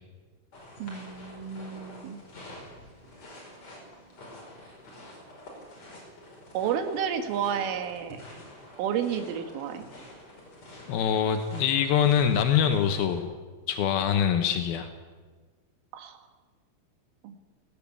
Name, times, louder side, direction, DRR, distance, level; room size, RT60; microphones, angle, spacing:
sound 1, 0.5-13.2, left 1 dB, 35° left, 6.1 m, -47 dB
voice 1, 0.8-2.2 6.5-8.2 8.8-9.9 15.9-16.2 17.2-17.4, right 8 dB, 75° right, 8 dB, 4.0 m, -31 dB
voice 2, 10.9-13.3 13.7-14.9, left 8 dB, 85° left, 7 dB, 2.1 m, -24 dB
17.5 x 17.5 x 8.6 m, 1.4 s
omnidirectional pair, 5.9 m